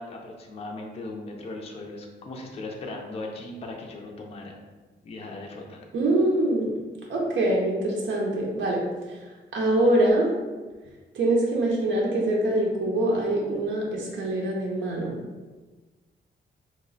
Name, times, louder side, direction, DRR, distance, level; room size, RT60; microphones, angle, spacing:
voice 1, 0.0-4.5 5.0-5.8, left 2 dB, 35° left, 1 dB, 0.4 m, -38 dB
voice 2, 5.9-6.8 7.1-8.8 9.5-10.3 11.1-15.1, right 1 dB, 80° right, -2 dB, 0.6 m, -24 dB
2.9 x 2.0 x 3.8 m, 1.3 s
wide cardioid pair, 160°, 19 cm